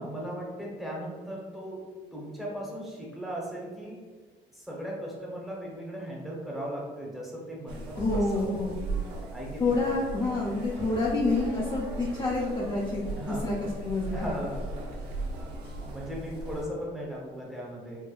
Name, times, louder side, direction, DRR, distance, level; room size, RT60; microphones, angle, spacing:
voice 1, 0.0-4.0 4.5-8.5 9.3-9.7 13.1-13.5 14.1-14.7 15.8-18.1, equal, ahead, -4 dB, 0.8 m, -37 dB
sound 1, 7.7-16.7, right 2 dB, 80° right, 0.7 m, -37 dB
voice 2, 8.0-8.8 9.6-13.6 13.8-14.3, left 2 dB, 30° left, -5 dB, 0.5 m, -28 dB
4.5 x 2.1 x 2.3 m, 1.5 s
cardioid pair, 110°, 17 cm